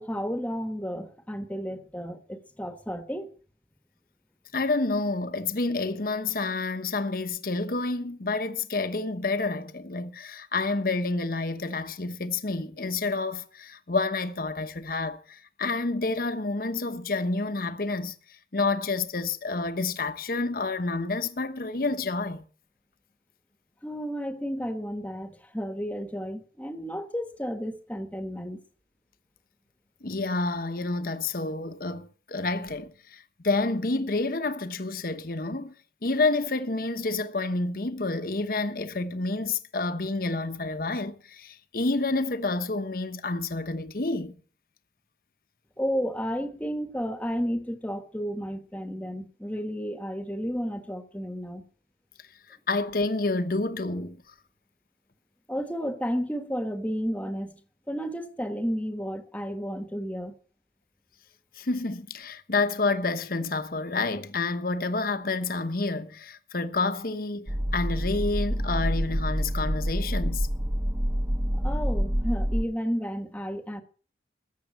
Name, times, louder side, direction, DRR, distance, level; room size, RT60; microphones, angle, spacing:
voice 1, 0.0-3.3 23.8-28.6 45.8-51.6 55.5-57.6 57.9-60.4 71.5-73.8, equal, 10° left, 1.3 m, -32 dB
voice 2, 4.5-18.2 18.5-22.4 30.0-35.7 36.0-44.3 52.7-54.2 61.6-70.5, left 3 dB, 55° left, 1.1 m, -29 dB
sound 1, 67.5-72.6, equal, 15° right, 0.6 m, -27 dB
14.0 x 8.3 x 7.7 m
head